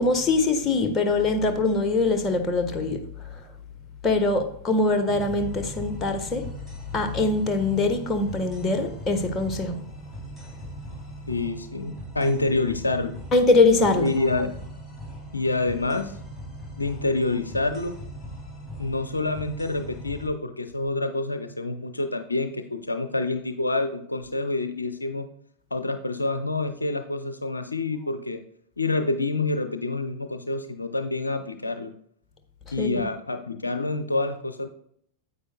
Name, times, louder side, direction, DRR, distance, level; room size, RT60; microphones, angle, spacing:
voice 1, 0.0-3.4 4.0-6.5 6.9-9.9 13.3-14.1 32.8-33.1, left 3 dB, 20° left, 1.2 m, -23 dB
sound 1, 5.1-20.3, right 1 dB, 5° right, 3.0 m, -40 dB
voice 2, 11.3-13.2 14.0-14.6 15.3-16.1 16.8-18.0 18.8-25.3 25.7-28.4 28.8-31.9 32.7-34.7, left 2 dB, 80° left, 0.5 m, -27 dB
9.7 x 8.3 x 2.2 m
figure-of-eight pair, 90°, 0 cm